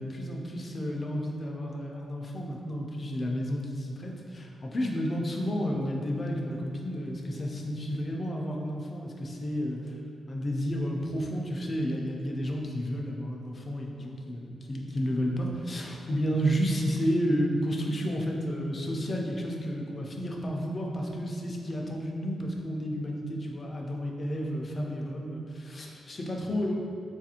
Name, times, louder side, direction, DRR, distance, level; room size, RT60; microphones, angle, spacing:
voice 1, 0.0-10.0 10.3-26.8, equal, 30° left, 0 dB, 0.4 m, -31 dB
4.1 x 2.4 x 2.8 m, 2.6 s
wide cardioid pair, 150°, 0 cm